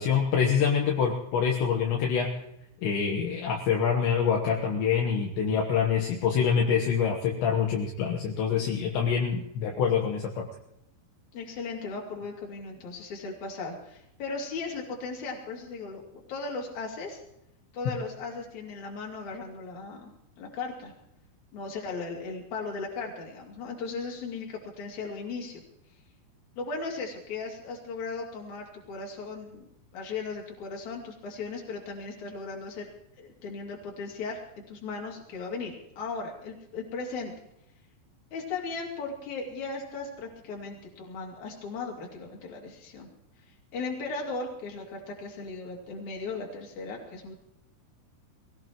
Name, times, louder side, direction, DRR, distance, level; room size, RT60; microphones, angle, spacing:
voice 1, 0.0-2.3 2.8-10.5, left 7 dB, 70° left, 0 dB, 3.2 m, -26 dB
voice 2, 11.3-16.0 16.3-17.2 17.7-20.1 20.4-20.9 21.5-25.6 26.5-32.9 33.2-37.3 38.3-43.1 43.7-47.3, left 4 dB, 45° left, -1 dB, 3.4 m, -37 dB
23.5 x 17.5 x 3.0 m, 0.80 s
omnidirectional pair, 5.7 m